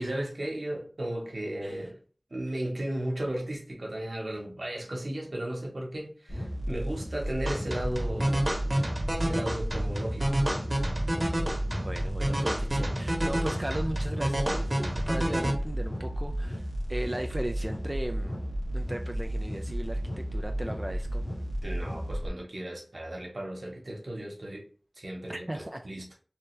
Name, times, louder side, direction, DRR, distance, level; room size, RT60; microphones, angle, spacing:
voice 1, 0.0-2.0 2.3-8.4 9.2-10.4 21.6-24.6 25.0-26.0, right 1 dB, 80° right, 1.0 m, -35 dB
sound 1, 6.3-22.3, equal, 70° left, 1.1 m, -33 dB
sound 2, 7.5-15.5, right 1 dB, 55° right, 1.0 m, -30 dB
voice 2, 11.8-18.4 18.7-21.3 25.3-25.9, right 1 dB, 30° right, 0.3 m, -37 dB
3.2 x 2.7 x 3.2 m
wide cardioid pair, 50°, 0 cm